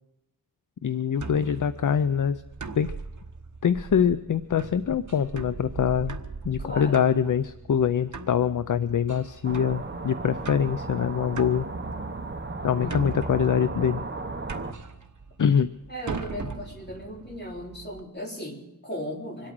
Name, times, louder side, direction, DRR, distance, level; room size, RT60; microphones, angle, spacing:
voice 1, 0.8-2.4 2.8-2.9 3.6-6.2 6.4-11.7 12.6-14.0 15.4-15.7, left 8 dB, 60° left, 13 dB, 0.5 m, -24 dB
sound 1, 1.2-18.0, right 4 dB, 55° right, 1.1 m, -40 dB
voice 2, 6.6-7.0 12.6-13.1 15.9-19.5, equal, 30° left, -1 dB, 3.6 m, -37 dB
sound 2, 9.4-14.7, right 3 dB, 30° right, 1.1 m, -35 dB
25.5 x 8.7 x 6.2 m, 0.95 s
wide cardioid pair, 90°, 35 cm